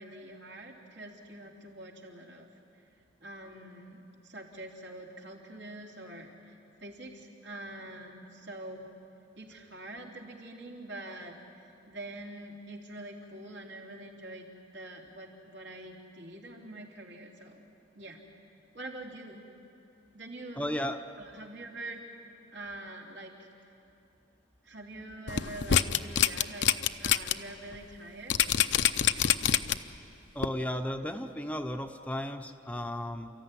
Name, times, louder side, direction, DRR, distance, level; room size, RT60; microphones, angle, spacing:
voice 1, 0.0-2.5 3.2-6.6 6.8-8.9 9.4-14.5 14.7-17.6 18.0-18.2 18.7-19.5 20.1-20.7 21.2-22.0 22.5-23.3 24.6-26.7 27.0-28.4, right 1 dB, 75° right, -1 dB, 3.3 m, -45 dB
voice 2, 20.6-21.0 30.3-33.3, equal, 5° left, 5 dB, 0.7 m, -34 dB
sound 1, 25.3-27.3 27.7-27.8 28.3-30.0 30.4-30.5, left 9 dB, 65° left, 0.7 m, -25 dB
29.5 x 14.5 x 9.9 m, 2.9 s
head